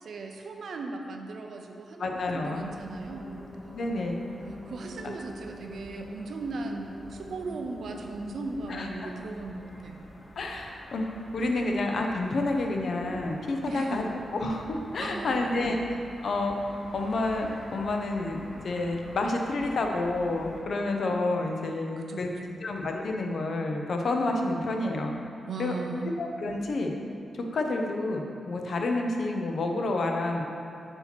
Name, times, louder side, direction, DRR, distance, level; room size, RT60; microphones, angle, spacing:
voice 1, 0.0-3.4 3.9-4.0 4.7-10.1 13.6-14.1 15.0-15.8 22.1-22.6 25.5-26.1, right 3 dB, 65° right, 3 dB, 0.5 m, -37 dB
voice 2, 2.0-2.6 3.7-4.2 8.7-9.1 10.4-14.0 14.3-15.8 16.2-18.4 18.6-22.3 22.6-25.1 25.6-25.7 26.2-26.9 27.5-30.4, left 2 dB, 60° left, 2 dB, 0.6 m, -29 dB
sound 1, 2.5-20.6, left 1 dB, 15° left, 1.4 m, -46 dB
7.8 x 2.9 x 4.4 m, 2.5 s
wide cardioid pair, 125°, 0 cm